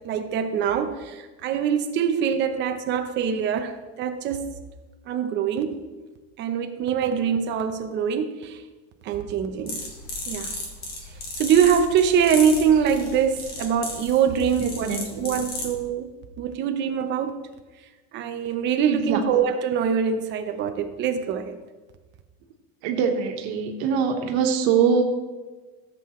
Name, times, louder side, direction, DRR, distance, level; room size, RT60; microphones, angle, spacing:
voice 1, 0.0-3.7 4.0-4.4 5.1-5.9 6.4-8.6 9.0-9.8 10.3-10.6 11.3-14.9 15.2-16.1 16.4-17.3 18.1-21.6, right 7 dB, 35° right, 6 dB, 0.8 m, -23 dB
sound 1, 9.7-15.8, left 2 dB, 30° left, 1.8 m, -35 dB
voice 2, 14.5-15.2 18.9-19.2 22.8-25.0, right 6 dB, 90° right, 3 dB, 1.5 m, -23 dB
15.0 x 7.7 x 3.2 m, 1.3 s
cardioid pair, 180°, 31 cm